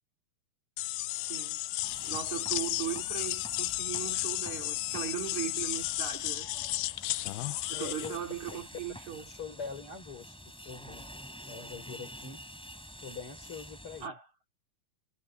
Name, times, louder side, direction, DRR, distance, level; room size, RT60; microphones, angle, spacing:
sound 1, 0.8-8.2, left 18 dB, 85° left, 2.6 m, -33 dB
sound 2, 1.8-14.1, equal, ahead, 3.9 m, -48 dB
voice 1, 2.0-6.5 7.7-9.2 14.0-14.2, right 11 dB, 50° right, 4.1 m, -38 dB
voice 2, 7.7-8.2 8.5-8.6 9.3-10.4 10.7-11.0 11.5-12.4 13.0-14.1, left 6 dB, 35° left, 5.2 m, -43 dB
omnidirectional pair, 4.4 m